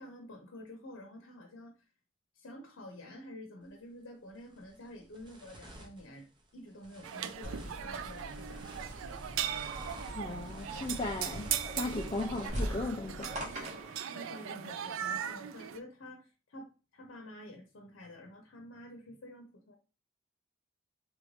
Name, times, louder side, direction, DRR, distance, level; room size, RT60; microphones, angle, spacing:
voice 1, 0.0-1.8 2.3-8.8 14.0-19.8, left 1 dB, 80° left, 3 dB, 0.7 m, -49 dB
sound 1, 3.6-3.8 4.3-12.5, right 1 dB, 25° right, 0.6 m, -52 dB
sound 2, 7.0-15.8, right 9 dB, 85° right, 0.3 m, -39 dB
sound 3, 7.4-14.0, right 1 dB, 40° right, 1.0 m, -42 dB
voice 2, 10.1-13.3, left 2 dB, 25° left, 1 dB, 0.4 m, -36 dB
3.1 x 2.6 x 3.1 m, 0.33 s
head